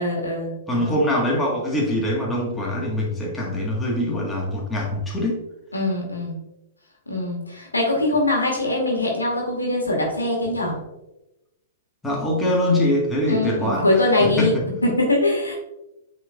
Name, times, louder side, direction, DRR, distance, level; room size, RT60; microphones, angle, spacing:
voice 1, 0.0-1.0 5.7-6.4 7.1-10.8 13.3-14.5 14.8-15.5, left 2 dB, 85° left, -1 dB, 1.9 m, -22 dB
voice 2, 0.7-5.4 12.0-13.9 14.2-14.6, left 1 dB, 10° left, -3 dB, 1.7 m, -23 dB
8.8 x 4.3 x 2.5 m, 0.94 s
figure-of-eight pair, 105°, 0 cm